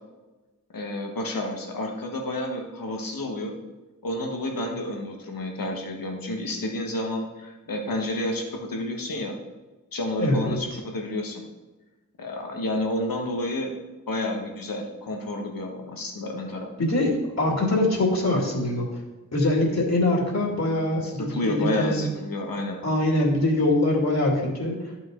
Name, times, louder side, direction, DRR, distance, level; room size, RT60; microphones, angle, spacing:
voice 1, 0.7-3.5 4.0-9.4 9.9-11.4 12.2-13.7 14.1-16.7 21.0-22.8, left 1 dB, 90° left, 2 dB, 1.4 m, -30 dB
voice 2, 10.2-10.6 16.8-18.9 19.3-22.1 22.8-24.8, left 1 dB, 50° left, -2 dB, 2.4 m, -23 dB
11.0 x 5.9 x 3.7 m, 1.2 s
wide cardioid pair, 75°, 33 cm